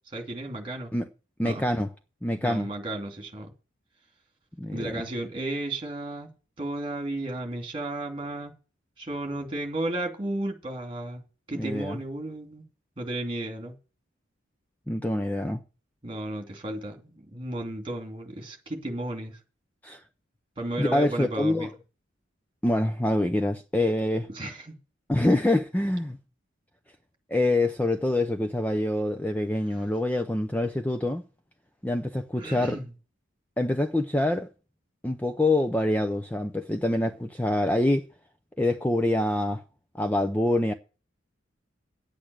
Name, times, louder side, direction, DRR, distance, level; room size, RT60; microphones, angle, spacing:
voice 1, 0.1-0.9 1.4-1.6 2.4-3.5 4.7-6.3 6.6-8.5 9.0-11.2 11.5-12.6 13.0-13.7 16.0-19.4 20.6-21.7 24.3-24.7 32.4-32.9, right 1 dB, 25° right, 2.7 m, -33 dB
voice 2, 1.4-1.9 2.2-2.7 4.6-5.0 11.5-12.0 14.9-15.6 19.8-20.0 20.8-21.7 22.6-24.3 25.1-26.2 27.3-31.2 31.8-32.8 33.6-34.5 35.0-38.1 38.6-39.6 39.9-40.7, left 1 dB, 10° left, 0.5 m, -25 dB
10.0 x 8.6 x 6.1 m
head